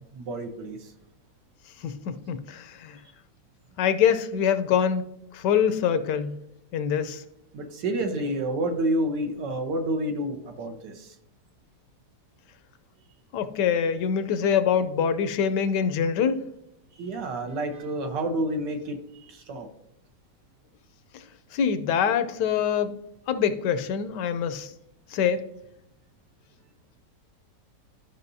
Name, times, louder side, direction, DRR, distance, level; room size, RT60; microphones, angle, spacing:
voice 1, 0.1-0.9 7.5-11.1 16.9-19.7, right 1 dB, 85° right, 1.7 m, -29 dB
voice 2, 1.8-3.0 3.8-5.0 5.3-6.4 6.7-7.2 13.3-16.4 21.5-23.0 23.3-24.7 25.1-25.5, left 8 dB, 85° left, 1.3 m, -24 dB
12.0 x 5.6 x 2.7 m
omnidirectional pair, 1.8 m